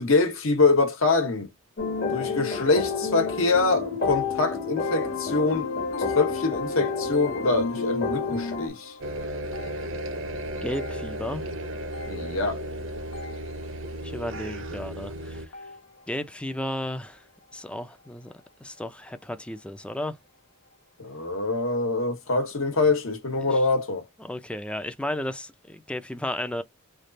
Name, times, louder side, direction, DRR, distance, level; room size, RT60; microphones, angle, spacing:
voice 1, 0.0-1.5 2.1-5.8 6.1-8.9 12.1-12.6 21.0-24.0, left 3 dB, 70° left, 1.1 m, -24 dB
sound 1, 1.8-8.7, left 5 dB, 50° left, 1.2 m, -30 dB
sound 2, 4.8-16.2 16.5-16.9 17.6-17.8 18.1-18.2 18.8-18.9, left 3 dB, 90° left, 1.0 m, -39 dB
sound 3, 9.0-15.5, right 1 dB, 60° right, 0.8 m, -34 dB
voice 2, 10.6-11.4 14.0-15.5 16.1-17.2 17.5-18.3 18.6-20.2 23.5-23.6 24.2-26.6, left 1 dB, 5° left, 0.4 m, -33 dB
3.3 x 2.4 x 3.9 m
head